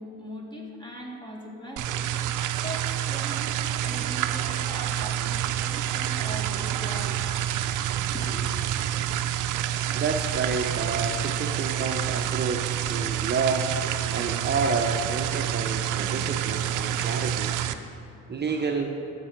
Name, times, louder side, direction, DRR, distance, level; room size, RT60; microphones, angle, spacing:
voice 1, 0.0-2.0 2.6-3.5 3.8-7.5 7.9-8.7, equal, 15° left, -1 dB, 1.9 m, -40 dB
sound 1, 1.8-17.7, right 11 dB, 85° right, 0.6 m, -28 dB
voice 2, 9.9-13.7 14.1-17.6 18.3-18.9, right 4 dB, 35° right, 2 dB, 0.7 m, -29 dB
13.0 x 6.7 x 4.5 m, 2.8 s
cardioid pair, 90°, 30 cm